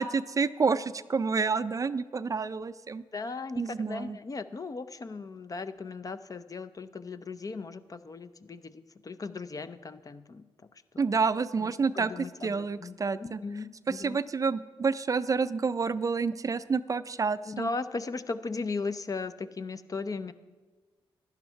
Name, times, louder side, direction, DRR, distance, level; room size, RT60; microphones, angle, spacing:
voice 1, 0.0-3.0 3.6-4.2 11.0-12.1 12.4-13.4 13.9-17.7, right 5 dB, 35° right, 14 dB, 0.4 m, -29 dB
voice 2, 3.1-10.4 11.6-14.2 17.5-20.3, left 4 dB, 40° left, 12 dB, 0.6 m, -37 dB
11.5 x 10.5 x 4.6 m, 1.3 s
cardioid pair, 60°, 10 cm